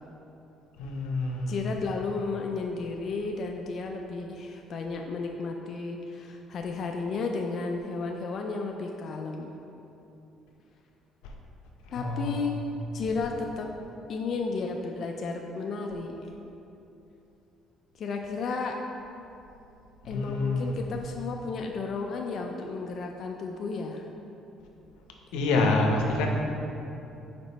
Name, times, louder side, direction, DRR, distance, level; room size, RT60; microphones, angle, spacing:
voice 1, 0.8-1.7 11.9-12.4 13.0-13.2 20.0-20.8 25.3-26.3, left 2 dB, 90° left, 1 dB, 0.7 m, -27 dB
voice 2, 1.5-9.5 11.9-12.6 12.9-13.7 14.1-16.3 17.9-18.8 20.0-24.1, left 4 dB, 50° left, 2 dB, 0.4 m, -33 dB
5.1 x 4.9 x 4.1 m, 2.9 s
cardioid pair, 95°, 0 cm